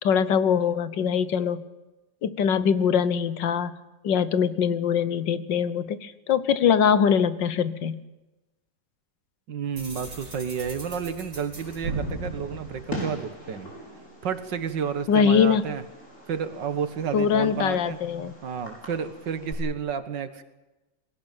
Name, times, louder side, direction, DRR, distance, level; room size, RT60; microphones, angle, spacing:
voice 1, 0.0-1.6 2.2-3.7 4.0-8.0 15.1-15.6 17.1-18.3, left 7 dB, 90° left, 15 dB, 1.8 m, -22 dB
voice 2, 9.5-13.7 14.2-15.8 16.3-18.0 18.4-20.4, right 7 dB, 80° right, 11 dB, 2.3 m, -31 dB
sound 1, 9.8-13.6, right 2 dB, 45° right, 5.2 m, -36 dB
Fireworks, 11.5-19.5, left 1 dB, 45° left, 6.8 m, -42 dB
21.0 x 17.5 x 9.2 m, 1.1 s
omnidirectional pair, 1.9 m